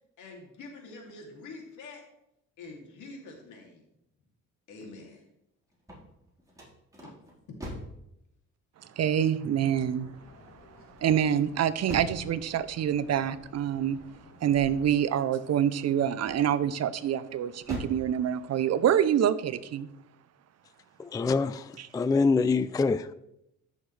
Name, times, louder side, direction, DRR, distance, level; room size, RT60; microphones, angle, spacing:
voice 1, 0.2-2.0 2.6-3.8 4.7-5.2 7.5-7.6, left 3 dB, 80° left, 2.8 m, -45 dB
sound 1, 5.7-8.0 11.0-12.3 16.2-16.8 17.3-18.1, left 1 dB, 10° right, 4.2 m, -41 dB
voice 2, 8.8-19.9 21.8-21.9, right 9 dB, 60° right, 0.7 m, -27 dB
sound 2, 9.7-14.9, left 3 dB, 45° left, 2.2 m, -54 dB
voice 3, 21.0-23.1, left 4 dB, 15° left, 0.3 m, -25 dB
14.0 x 6.5 x 3.3 m
cardioid pair, 90°, 30 cm